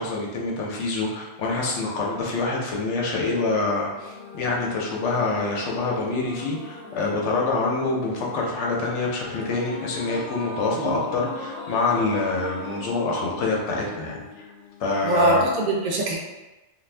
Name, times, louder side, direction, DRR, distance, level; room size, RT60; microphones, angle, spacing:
voice 1, 0.0-14.2 14.8-15.5, left 3 dB, 90° left, -2 dB, 1.0 m, -26 dB
sound 1, 3.9-15.3, left 3 dB, 60° left, 0.8 m, -40 dB
voice 2, 15.0-16.2, right 2 dB, 55° right, -1 dB, 0.5 m, -22 dB
2.5 x 2.4 x 3.2 m, 1.1 s
omnidirectional pair, 1.2 m